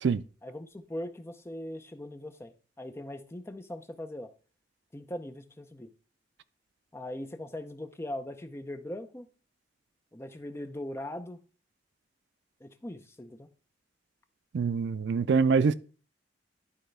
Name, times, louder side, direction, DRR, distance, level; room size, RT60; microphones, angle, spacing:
voice 1, 0.4-4.3 4.9-5.9 6.9-9.3 10.1-11.4 12.6-13.5, left 1 dB, 15° left, 0.6 m, -40 dB
voice 2, 14.5-15.7, right 5 dB, 70° right, 0.4 m, -24 dB
11.5 x 4.3 x 3.3 m
head